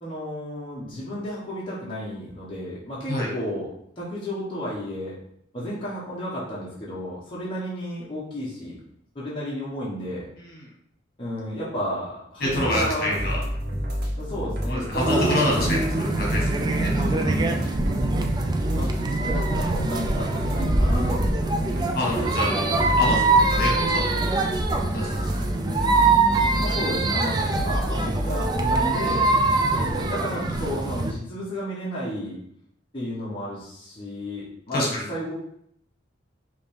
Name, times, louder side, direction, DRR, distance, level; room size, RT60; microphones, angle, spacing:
voice 1, 0.0-3.7 4.0-5.2 5.5-8.8 9.1-10.3 11.2-13.2 14.2-15.8 17.1-17.5 18.7-21.7 26.6-29.3 29.7-32.4 32.9-35.3, equal, 30° left, -8 dB, 1.1 m, -32 dB
voice 2, 12.4-13.4 14.7-16.5 16.8-17.3 20.7-20.9 21.9-24.1 24.9-25.2 25.7-26.1 34.7-35.0, left 1 dB, 55° left, -3 dB, 1.4 m, -27 dB
sound 1, 12.4-28.5, equal, 60° right, 0.8 m, -30 dB
sound 2, 15.0-31.1, right 3 dB, 20° right, 0.4 m, -24 dB
5.0 x 2.6 x 3.5 m, 0.70 s
head